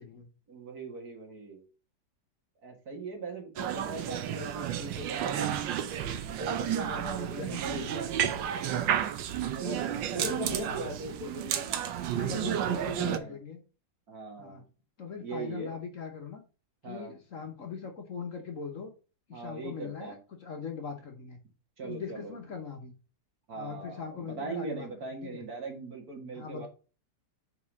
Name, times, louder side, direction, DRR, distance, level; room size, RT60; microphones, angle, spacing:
voice 1, 0.5-1.6 2.6-5.5 6.4-8.9 9.5-11.9 12.4-13.4 14.1-14.6 15.2-15.7 16.8-17.1 19.3-20.2 21.8-22.3 23.5-26.7, right 3 dB, 55° right, 2 dB, 2.2 m, -40 dB
sound 1, 3.6-13.2, right 10 dB, 90° right, 1.4 m, -32 dB
voice 2, 7.2-8.1 9.6-9.8 10.1-11.0 12.1-13.6 14.4-14.6 15.0-16.4 16.8-18.9 19.3-21.4 21.8-22.9 23.5-25.4 26.3-26.7, left 5 dB, 50° left, 3 dB, 1.3 m, -41 dB
5.4 x 4.7 x 5.2 m, 0.34 s
omnidirectional pair, 2.0 m